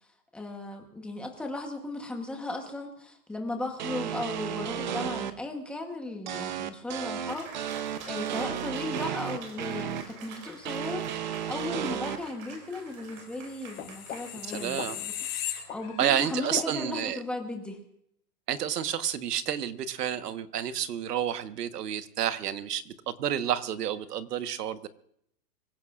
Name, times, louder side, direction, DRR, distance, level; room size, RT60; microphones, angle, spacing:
voice 1, 0.3-15.1 15.7-17.8, left 2 dB, ahead, 2 dB, 1.0 m, -36 dB
sound 1, 3.8-5.3 6.3-10.0 10.7-12.2, right 9 dB, 30° right, 0.6 m, -33 dB
Cheering, 7.3-16.2, right 5 dB, 55° right, 4.3 m, -47 dB
sound 2, 13.3-16.2 16.6-16.7, left 11 dB, 60° left, 4.5 m, -37 dB
voice 2, 14.4-15.0 16.0-17.2 18.5-24.9, right 10 dB, 75° right, 11 dB, 1.4 m, -30 dB
25.0 x 16.0 x 2.5 m, 0.70 s
hypercardioid pair, 170°, 48 cm